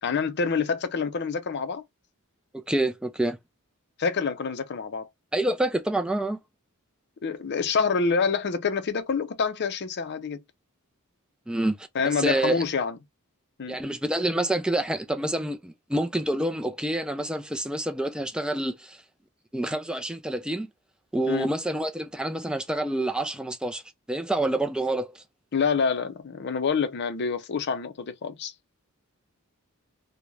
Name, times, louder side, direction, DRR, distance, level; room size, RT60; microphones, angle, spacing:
voice 1, 0.0-1.8 4.0-5.1 7.2-10.4 11.9-13.0 13.6-13.8 21.3-21.5 25.5-28.5, left 5 dB, 50° left, 0.5 m, -27 dB
voice 2, 2.5-3.4 5.3-6.4 11.5-11.8 12.1-12.5 13.7-19.0 19.5-20.7 21.1-23.8 24.1-25.2, right 1 dB, 5° right, 0.3 m, -27 dB
2.4 x 2.1 x 3.0 m
head